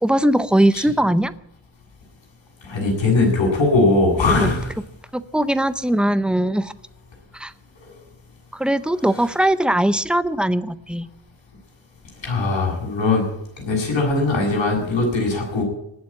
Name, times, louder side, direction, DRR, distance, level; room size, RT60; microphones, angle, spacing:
voice 1, 0.0-1.3 4.3-4.5 5.1-6.7 7.3-7.5 8.5-11.1, right 1 dB, ahead, 14 dB, 0.6 m, -20 dB
voice 2, 2.6-4.7 12.2-13.2 13.7-15.6, left 3 dB, 85° left, -1 dB, 7.6 m, -20 dB
19.0 x 7.5 x 9.7 m, 0.79 s
wide cardioid pair, 165°, 44 cm